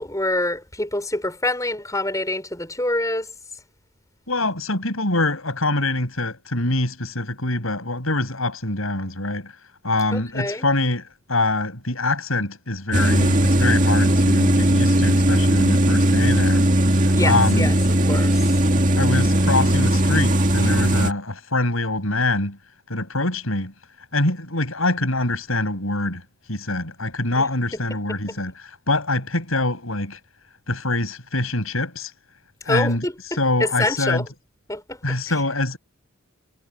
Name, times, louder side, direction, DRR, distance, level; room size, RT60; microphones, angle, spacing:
voice 1, 0.0-3.3 10.1-10.7 17.1-17.7 18.1-18.5 27.4-27.5 27.7-27.8 28.3-28.4 32.7-33.1 33.6-34.3 34.7-35.4, left 1 dB, 15° left, 6.0 m, -26 dB
voice 2, 4.3-9.5 9.8-16.6 17.2-17.7 19.0-22.6 22.9-23.7 24.1-26.2 26.5-30.2 30.7-32.1 32.7-33.0 33.4-34.2 35.0-35.8, left 2 dB, 90° left, 7.8 m, -24 dB
sound 1, 12.9-21.1, right 1 dB, 40° right, 2.0 m, -18 dB
head